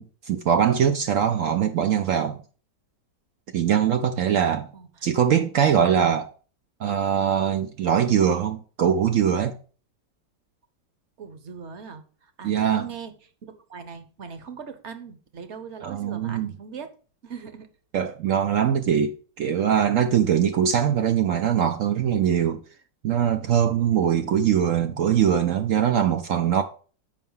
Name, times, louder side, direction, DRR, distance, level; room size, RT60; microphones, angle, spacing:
voice 1, 0.0-2.4 3.5-4.7 5.0-6.3 6.8-9.6 12.4-12.9 15.8-16.5 17.9-22.6 23.0-26.6, right 8 dB, 70° right, 0.7 m, -22 dB
voice 2, 4.7-5.1 11.2-13.1 13.4-16.9 17.2-17.7, right 6 dB, 50° right, 1.0 m, -40 dB
7.1 x 5.5 x 5.4 m
omnidirectional pair, 1.9 m